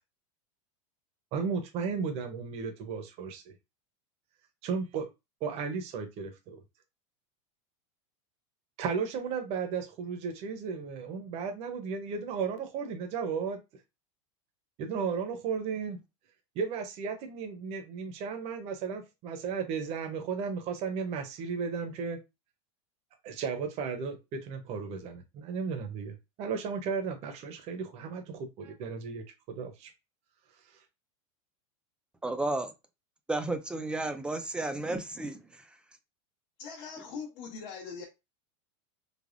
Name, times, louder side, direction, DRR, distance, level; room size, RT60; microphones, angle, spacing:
voice 1, 1.3-3.5 4.6-5.1 5.4-6.6 8.8-13.6 14.8-16.0 16.6-22.2 23.2-29.2 29.5-29.9, right 5 dB, 40° right, 0.7 m, -34 dB
voice 2, 32.2-32.7 33.3-35.6, right 2 dB, 5° right, 0.3 m, -32 dB
voice 3, 36.6-38.0, left 5 dB, 55° left, 0.9 m, -41 dB
3.4 x 2.1 x 2.5 m
supercardioid pair, 140°, 16 cm